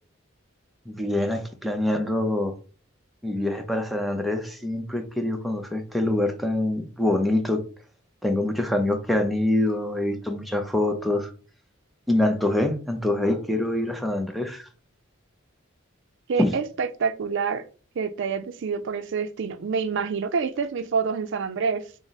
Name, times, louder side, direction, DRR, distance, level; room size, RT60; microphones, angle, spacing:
voice 1, 0.9-2.6 3.2-7.6 8.2-11.3 12.1-14.7 16.4-16.5, left 1 dB, ahead, 0.5 m, -25 dB
voice 2, 16.3-17.6 18.0-21.9, right 5 dB, 65° right, 0.4 m, -27 dB
4.6 x 2.0 x 3.9 m
head